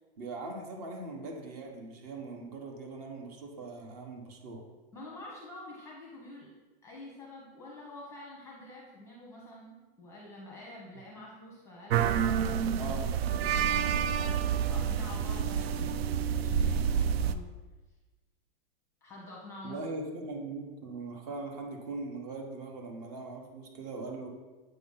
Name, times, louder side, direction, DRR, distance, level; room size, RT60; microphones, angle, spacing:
voice 1, 0.2-4.6 12.7-13.1 19.6-24.3, right 3 dB, 40° right, 2 dB, 1.1 m, -40 dB
voice 2, 4.9-6.5 6.8-13.0 13.3-17.5 19.0-19.8 20.2-20.3, left 2 dB, 10° left, -3 dB, 0.8 m, -47 dB
sound 1, 11.9-17.3, right 8 dB, 75° right, 0.5 m, -28 dB
7.9 x 3.1 x 5.5 m, 1.2 s
supercardioid pair, 170°, 31 cm